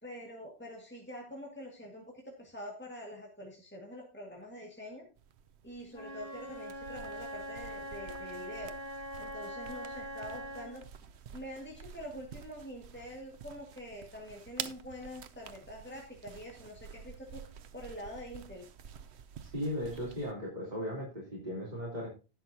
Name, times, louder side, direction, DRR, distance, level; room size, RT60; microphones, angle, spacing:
voice 1, 0.0-5.1 5.6-10.8 11.3-17.5 17.7-18.7, equal, 10° left, -1 dB, 2.0 m, -46 dB
sound 1, 5.2-20.3, right 8 dB, 90° right, 1.0 m, -49 dB
Wind instrument woodwind instrument, 5.9-10.9, equal, 25° left, 1.4 m, -42 dB
voice 2, 19.5-22.1, equal, 45° right, -6 dB, 3.7 m, -37 dB
18.5 x 6.3 x 2.8 m, 0.31 s
omnidirectional pair, 1.1 m